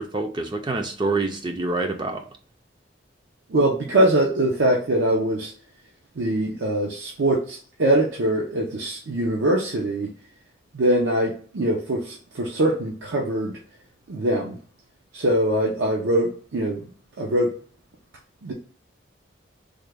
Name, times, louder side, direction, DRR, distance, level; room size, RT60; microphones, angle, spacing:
voice 1, 0.0-2.3, right 3 dB, 25° right, 5 dB, 0.3 m, -26 dB
voice 2, 3.5-5.5 6.2-10.1 10.7-13.6 14.1-14.6 15.1-16.8 17.2-17.5 18.4-18.5, right 1 dB, 80° right, -1 dB, 0.6 m, -22 dB
3.5 x 2.2 x 3.3 m, 0.43 s
head